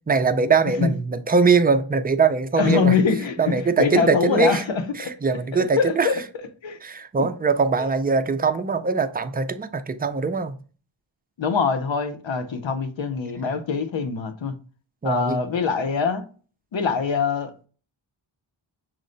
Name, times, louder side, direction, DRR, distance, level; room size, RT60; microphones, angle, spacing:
voice 1, 0.1-3.0 3.4-4.6 5.0-6.1 6.8-10.6 15.0-15.4, right 4 dB, 20° right, 0.4 m, -21 dB
voice 2, 2.6-5.1 5.5-6.2 6.6-6.8 7.2-7.3 7.8-7.9 11.4-14.5 15.0-16.3 16.7-17.7, left 5 dB, 65° left, 0.8 m, -24 dB
6.2 x 2.1 x 3.8 m
wide cardioid pair, 75°, 48 cm